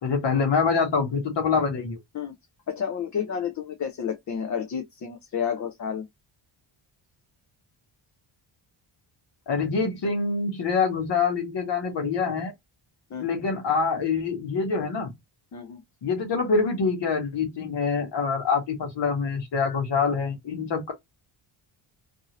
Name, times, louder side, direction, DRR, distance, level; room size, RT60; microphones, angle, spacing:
voice 1, 0.0-2.0 9.5-12.5 13.2-15.1 16.0-20.9, left 5 dB, 55° left, 1.2 m, -25 dB
voice 2, 2.7-6.1 13.1-13.3 15.5-15.8, left 7 dB, 40° left, 0.5 m, -31 dB
2.7 x 2.6 x 2.9 m
wide cardioid pair, 150°, 49 cm